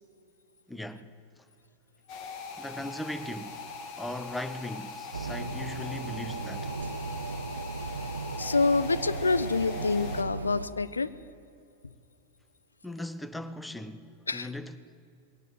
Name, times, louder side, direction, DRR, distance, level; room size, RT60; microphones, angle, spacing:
voice 1, 0.7-1.1 2.6-3.6 4.0-6.8 12.8-14.9, left 1 dB, 5° left, 1.0 m, -38 dB
sound 1, 2.1-10.2, left 4 dB, 40° left, 2.0 m, -41 dB
sound 2, 5.1-10.7, right 4 dB, 75° right, 0.7 m, -36 dB
voice 2, 8.4-11.1 14.3-14.5, left 3 dB, 75° left, 0.7 m, -27 dB
20.5 x 17.5 x 7.7 m
figure-of-eight pair, 90°, 0 cm